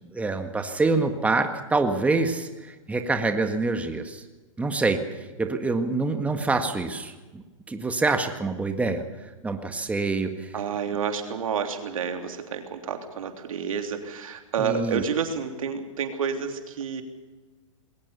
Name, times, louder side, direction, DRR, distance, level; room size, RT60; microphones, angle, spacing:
voice 1, 0.0-4.2 4.6-10.5 14.6-15.0, right 3 dB, 10° right, 6 dB, 1.8 m, -26 dB
voice 2, 10.5-17.0, right 6 dB, 80° right, 5 dB, 3.4 m, -29 dB
21.5 x 18.0 x 7.0 m, 1.2 s
hypercardioid pair, 135°, 17 cm